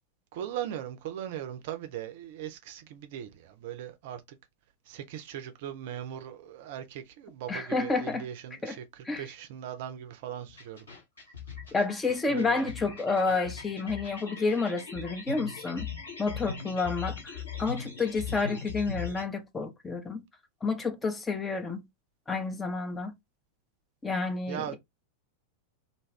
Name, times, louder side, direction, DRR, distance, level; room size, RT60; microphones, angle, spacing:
voice 1, 0.3-4.4 4.9-10.9 12.3-12.7 24.5-24.8, right 10 dB, 50° right, 0.5 m, -39 dB
voice 2, 7.5-8.3 8.6-8.8 9.0-9.3 11.7-15.9 16.2-20.2 20.6-21.8 22.3-23.1 24.0-24.8, left 4 dB, 15° left, 0.6 m, -30 dB
sound 1, 10.5-19.2, left 6 dB, 70° left, 1.1 m, -40 dB
2.6 x 2.3 x 3.1 m
figure-of-eight pair, 90°, 0 cm